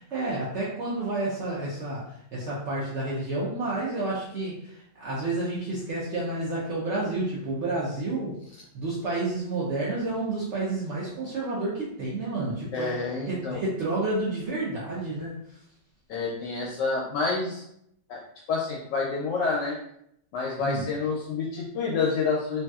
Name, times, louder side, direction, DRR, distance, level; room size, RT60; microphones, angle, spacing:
voice 1, 0.0-2.0 2.3-8.4 8.7-13.0 13.3-15.3 20.6-20.9, right 2 dB, 85° right, -6 dB, 0.6 m, -30 dB
voice 2, 12.7-13.6 16.1-17.6 18.1-18.2 18.5-19.8 20.3-22.6, left 4 dB, 75° left, -3 dB, 1.1 m, -28 dB
3.1 x 2.7 x 2.3 m, 0.73 s
omnidirectional pair, 2.0 m